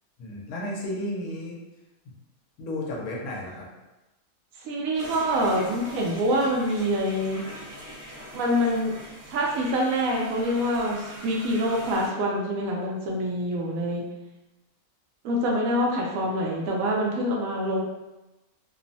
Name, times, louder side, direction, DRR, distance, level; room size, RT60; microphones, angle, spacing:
voice 1, 0.2-1.5 2.0-2.1 2.6-3.7, left 1 dB, 85° left, -3 dB, 1.1 m, -33 dB
voice 2, 4.6-7.4 8.3-8.9 9.3-14.1 15.2-17.8, equal, 75° right, -2 dB, 1.0 m, -25 dB
sound 1, 4.9-12.1, equal, 35° right, 0.8 m, -42 dB
2.9 x 2.0 x 2.6 m, 1.0 s
omnidirectional pair, 1.5 m